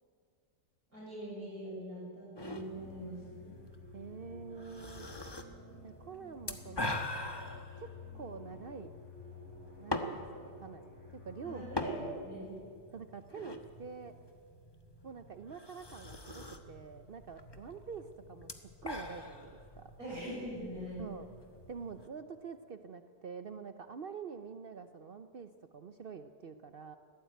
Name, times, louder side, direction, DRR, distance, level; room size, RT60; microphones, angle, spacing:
voice 1, 0.9-3.5 11.4-11.9 12.2-12.5 20.0-21.2, right 1 dB, 50° right, -5 dB, 6.6 m, -42 dB
sound 1, 2.4-22.1, left 2 dB, 15° left, 1.0 m, -44 dB
sound 2, 2.7-12.0, left 5 dB, 75° left, 8.5 m, -52 dB
voice 2, 3.9-5.1 5.8-7.1 7.8-7.9 8.1-8.9 9.8-11.6 12.0-12.2 12.9-14.1 15.0-19.9 21.0-21.3 21.7-27.0, right 6 dB, 85° right, 9 dB, 0.5 m, -46 dB
19.5 x 14.5 x 9.3 m, 2.3 s
omnidirectional pair, 1.9 m